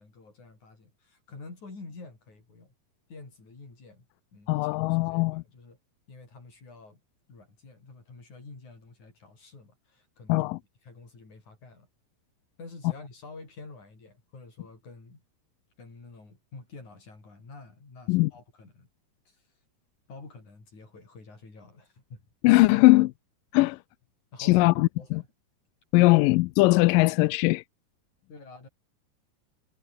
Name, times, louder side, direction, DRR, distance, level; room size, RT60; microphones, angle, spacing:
voice 1, 0.0-2.7 3.1-4.1 4.3-4.6 4.9-5.8 6.1-7.0 7.3-10.5 10.8-11.9 12.6-15.2 15.8-18.9 19.3-19.4 20.1-22.3 24.3-25.3 26.0-26.1 28.3-28.7, left 3 dB, 55° left, 9.1 m, -48 dB
voice 2, 4.5-5.4 10.3-10.6 18.1-18.3 22.4-23.1 23.5-23.8 24.4-25.2 25.9-27.6, left 21 dB, 80° left, 2.1 m, -20 dB
omnidirectional pair, 4.1 m